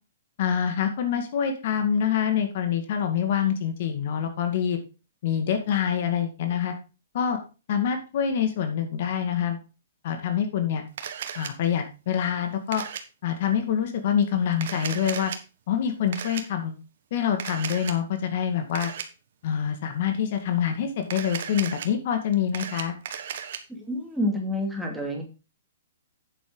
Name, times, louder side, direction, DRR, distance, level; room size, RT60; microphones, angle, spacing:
voice 1, 0.4-4.8 5.2-6.7 7.1-7.4 7.7-9.6 10.0-10.8 11.4-12.8 13.2-15.3 15.7-16.8 17.1-18.9 19.4-23.0, left 8 dB, 55° left, 6 dB, 2.0 m, -26 dB
Camera, 11.0-11.5 12.7-13.0 14.5-15.4 16.1-16.4 17.4-18.0 18.7-19.1 21.0-21.9 22.3-23.6, right 8 dB, 65° right, 1.4 m, -35 dB
voice 2, 23.7-25.2, left 1 dB, 5° right, -1 dB, 2.6 m, -28 dB
9.0 x 7.4 x 4.0 m, 0.31 s
hypercardioid pair, 145°, 0 cm